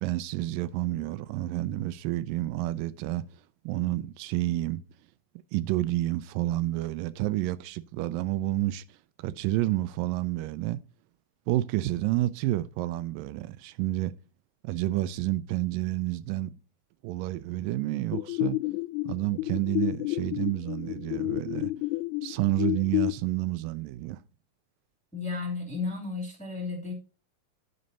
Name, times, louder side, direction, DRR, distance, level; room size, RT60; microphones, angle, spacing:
voice 1, 0.0-3.3 3.7-4.8 5.5-8.8 9.2-10.8 11.5-14.1 14.6-16.5 17.0-18.6 19.1-21.7 22.2-24.2, right 15 dB, 85° right, 2.2 m, -29 dB
sound 1, 18.1-23.1, left 19 dB, 85° left, 1.7 m, -30 dB
voice 2, 25.1-26.9, left 4 dB, ahead, 1.9 m, -33 dB
9.7 x 5.4 x 4.1 m
omnidirectional pair, 4.0 m